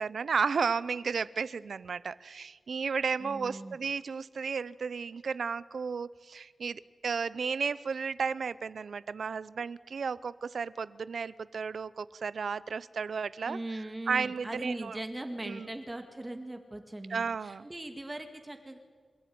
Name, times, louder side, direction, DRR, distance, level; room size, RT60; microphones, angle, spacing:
voice 1, 0.0-15.0 15.4-15.7 17.1-17.7, right 5 dB, 85° right, 18 dB, 0.6 m, -33 dB
voice 2, 3.2-3.8 13.5-18.8, right 1 dB, 20° right, 5 dB, 2.1 m, -40 dB
28.0 x 16.5 x 9.4 m, 1.5 s
wide cardioid pair, 135°, 0 cm